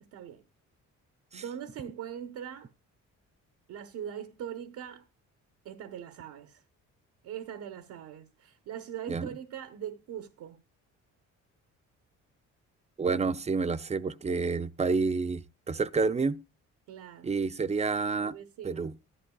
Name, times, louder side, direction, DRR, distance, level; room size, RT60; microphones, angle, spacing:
voice 1, 0.1-0.4 1.3-2.7 3.7-5.0 5.6-6.6 7.2-10.6 16.9-17.4 18.1-18.9, right 9 dB, 85° right, 0.9 m, -41 dB
voice 2, 13.0-16.4 17.2-18.4 18.6-18.9, right 4 dB, 20° right, 0.5 m, -29 dB
14.0 x 11.0 x 2.3 m
cardioid pair, 90°, 30 cm